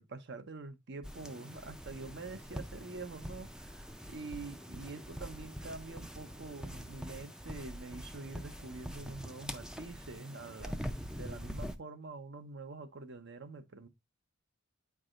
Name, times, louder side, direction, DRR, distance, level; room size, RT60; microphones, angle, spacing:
voice 1, 0.0-13.9, right 3 dB, 55° right, 0.8 m, -46 dB
sound 1, 1.0-11.8, equal, 5° right, 0.4 m, -44 dB
8.7 x 4.7 x 2.4 m
head